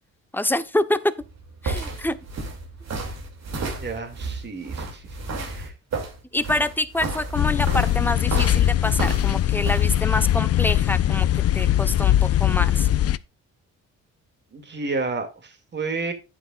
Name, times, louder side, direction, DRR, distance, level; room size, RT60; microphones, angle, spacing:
voice 1, 0.3-1.0 1.6-2.2 6.3-11.3 11.5-12.9, left 1 dB, 5° left, 0.9 m, -26 dB
sound 1, 1.2-9.8, right 3 dB, 60° right, 2.7 m, -32 dB
voice 2, 3.6-5.2 5.5-5.7 14.5-16.1, right 3 dB, 35° right, 2.4 m, -31 dB
sound 2, 7.3-13.2, left 12 dB, 55° left, 0.5 m, -21 dB
11.0 x 9.0 x 2.4 m
cardioid pair, 90°, 30 cm